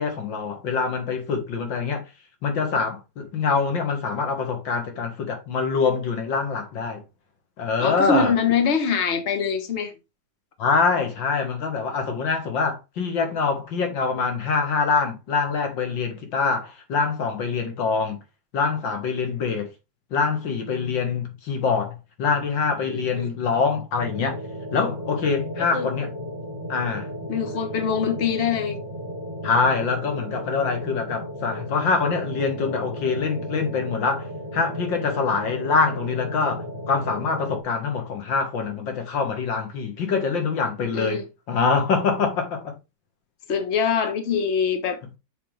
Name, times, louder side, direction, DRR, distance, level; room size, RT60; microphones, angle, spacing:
voice 1, 0.0-2.0 2.4-7.0 7.6-8.3 10.6-18.2 18.5-19.7 20.1-24.4 24.7-26.1 26.7-27.1 29.4-34.3 34.5-42.8, left 5 dB, 90° left, 2.4 m, -24 dB
voice 2, 7.8-9.9 22.9-23.3 25.7-25.9 27.3-28.8 40.9-41.2 43.5-45.0, left 6 dB, 40° left, 1.4 m, -24 dB
sound 1, 24.0-37.6, equal, 15° right, 1.2 m, -34 dB
6.8 x 6.1 x 3.3 m
omnidirectional pair, 2.0 m